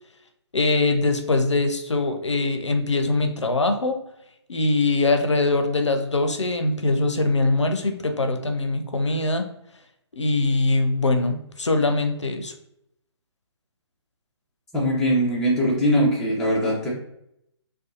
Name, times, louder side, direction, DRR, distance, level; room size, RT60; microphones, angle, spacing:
voice 1, 0.5-4.0 4.5-9.5 10.2-12.5, left 2 dB, 85° left, 7 dB, 0.4 m, -22 dB
voice 2, 14.7-16.9, equal, 5° left, -7 dB, 0.3 m, -21 dB
2.5 x 2.3 x 2.4 m, 0.78 s
figure-of-eight pair, 135°, 15 cm